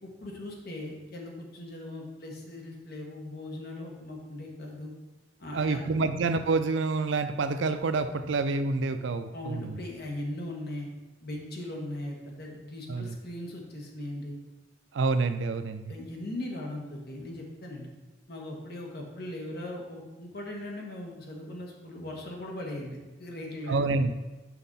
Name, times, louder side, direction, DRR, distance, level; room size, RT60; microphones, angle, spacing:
voice 1, 0.0-4.9 5.4-5.9 9.3-10.9 11.2-14.4 15.9-17.9 18.3-23.8, left 1 dB, 60° left, 0 dB, 1.4 m, -39 dB
voice 2, 5.5-9.8 12.9-13.2 14.9-15.9 23.7-24.1, right 3 dB, 85° right, 10 dB, 0.5 m, -28 dB
5.8 x 5.3 x 4.2 m, 1.2 s
head